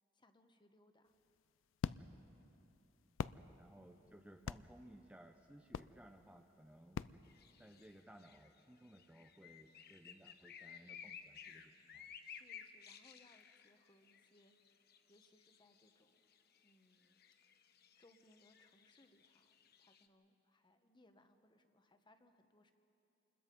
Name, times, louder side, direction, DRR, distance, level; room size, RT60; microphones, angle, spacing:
voice 1, 0.1-1.1 3.2-3.5 12.2-14.8 15.1-16.3 16.6-17.2 17.5-17.6 18.0-22.7, left 1 dB, 25° left, 7 dB, 1.1 m, -70 dB
sound 1, 1.1-8.0, left 6 dB, 80° left, 0.4 m, -47 dB
voice 2, 3.5-7.0 7.6-12.1, right 1 dB, 5° right, 5 dB, 0.6 m, -60 dB
sound 2, 7.2-20.1, left 7 dB, 55° left, 0.9 m, -57 dB
27.5 x 21.0 x 5.3 m, 2.8 s
head